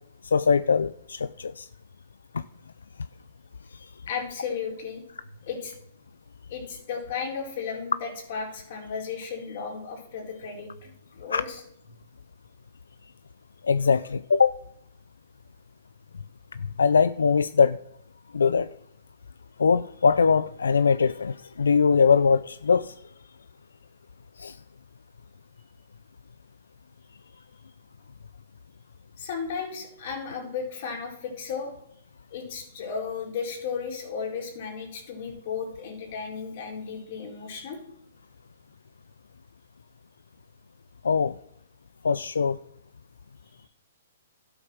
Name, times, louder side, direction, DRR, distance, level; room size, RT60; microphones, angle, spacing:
voice 1, 0.2-1.7 2.3-2.4 3.7-3.9 11.3-11.4 13.6-14.6 16.6-17.8 18.3-18.7 19.6-22.9 24.4-24.6 41.0-41.4 42.0-42.6, left 5 dB, 90° left, 16 dB, 0.4 m, -22 dB
voice 2, 4.1-5.0 5.4-5.7 6.5-11.6 29.2-31.7 32.3-37.8, left 6 dB, 55° left, 0 dB, 4.1 m, -34 dB
12.5 x 8.0 x 6.1 m, 0.77 s
hypercardioid pair, 135°, 0 cm